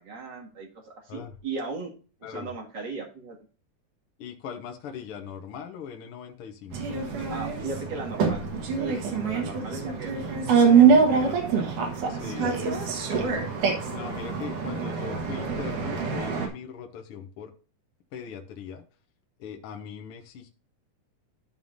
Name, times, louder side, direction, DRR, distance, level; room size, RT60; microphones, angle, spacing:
voice 1, 0.0-1.9 2.2-3.4 7.3-8.4 8.8-11.7, right 3 dB, 40° right, -1 dB, 2.4 m, -37 dB
voice 2, 4.2-6.8 12.1-12.6 13.9-17.5 18.1-18.8 19.4-20.5, left 7 dB, 60° left, 3 dB, 1.7 m, -40 dB
sound 1, 6.7-16.5, right 6 dB, 90° right, 3.1 m, -24 dB
13.0 x 5.5 x 2.6 m, 0.38 s
omnidirectional pair, 3.5 m